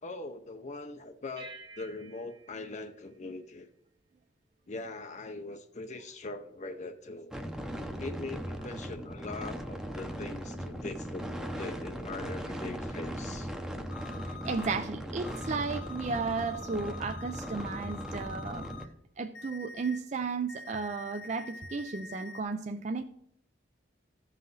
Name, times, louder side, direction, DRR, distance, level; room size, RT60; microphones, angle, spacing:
voice 1, 0.0-3.7 4.7-7.3 8.0-11.2 11.6-13.5, left 2 dB, 40° left, 0.6 m, -41 dB
sound 1, 1.4-4.1, right 2 dB, 25° right, 1.1 m, -52 dB
sound 2, 7.3-18.9, equal, 5° right, 0.7 m, -38 dB
sound 3, 13.9-14.7 15.2-18.8 19.3-20.0 20.5-22.4, left 4 dB, 80° left, 0.8 m, -46 dB
voice 2, 14.3-18.7 19.2-23.0, right 4 dB, 40° right, 0.4 m, -34 dB
14.5 x 5.7 x 3.9 m
head